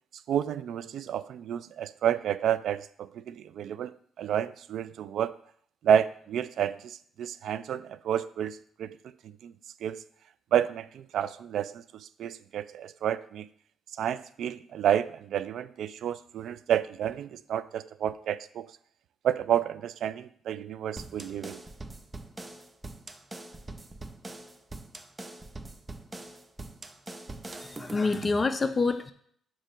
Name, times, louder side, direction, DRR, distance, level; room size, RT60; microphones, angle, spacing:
voice 1, 0.3-5.3 5.8-9.0 9.4-9.5 9.8-10.0 10.5-13.5 14.0-18.7 19.2-21.6, right 9 dB, 70° right, 16 dB, 0.3 m, -30 dB
sound 1, 21.0-28.5, right 2 dB, 20° right, 0.6 m, -43 dB
voice 2, 27.6-29.1, left 3 dB, 30° left, 9 dB, 0.5 m, -27 dB
8.5 x 3.0 x 6.2 m, 0.63 s
cardioid pair, 90°, 0 cm